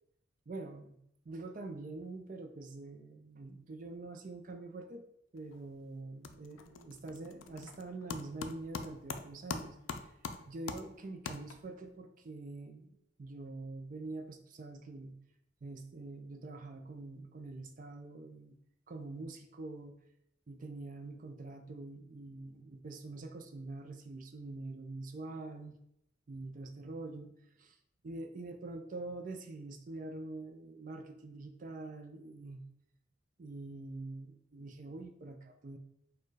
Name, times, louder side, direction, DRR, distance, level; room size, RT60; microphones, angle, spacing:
voice 1, 0.5-1.0 1.2-5.0 5.3-10.1 10.5-15.2 15.6-18.6 18.9-20.0 20.5-25.7 26.3-27.8 28.0-32.6 33.4-35.8, right 2 dB, 40° right, 5 dB, 0.4 m, -45 dB
sound 1, 5.4-5.7 6.0-11.9, left 5 dB, 85° left, 0.4 m, -44 dB
4.4 x 2.2 x 4.6 m, 0.76 s
head